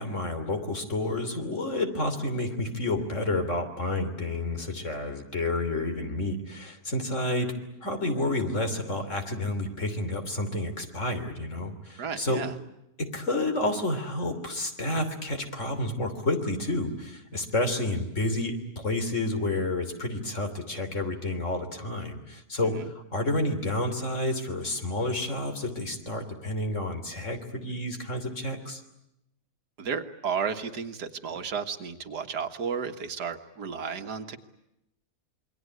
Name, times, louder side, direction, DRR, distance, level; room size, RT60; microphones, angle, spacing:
voice 1, 0.0-12.5 13.0-28.8, left 2 dB, 50° left, 7 dB, 3.5 m, -30 dB
voice 2, 12.0-12.5 22.6-22.9 29.8-34.4, right 6 dB, 85° right, 7 dB, 2.1 m, -33 dB
27.5 x 23.0 x 9.5 m, 0.83 s
omnidirectional pair, 1.7 m